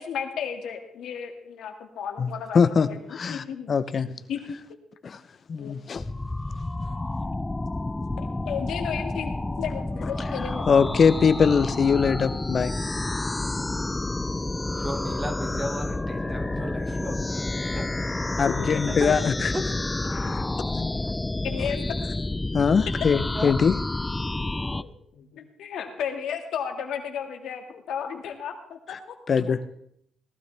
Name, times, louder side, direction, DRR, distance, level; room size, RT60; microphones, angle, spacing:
voice 1, 0.0-3.7 4.3-4.6 5.6-5.8 8.2-10.7 12.8-13.5 21.4-22.0 24.3-24.5 24.7-29.0 29.5-29.6, left 7 dB, 80° left, 4 dB, 2.0 m, -34 dB
voice 2, 2.2-4.1 5.0-5.2 5.5-6.0 10.7-12.7 18.4-19.5 20.1-20.4 20.7-20.9 22.5-23.7 28.9-29.0 29.3-29.6, left 6 dB, 45° left, 13 dB, 0.7 m, -22 dB
sound 1, 6.0-24.8, left 2 dB, 15° left, 0.4 m, -29 dB
voice 3, 14.8-17.9 18.9-19.2 19.5-19.6 23.3-23.5, right 1 dB, 20° right, 3 dB, 1.9 m, -34 dB
18.0 x 12.5 x 3.4 m, 0.71 s
cardioid pair, 90°, 0 cm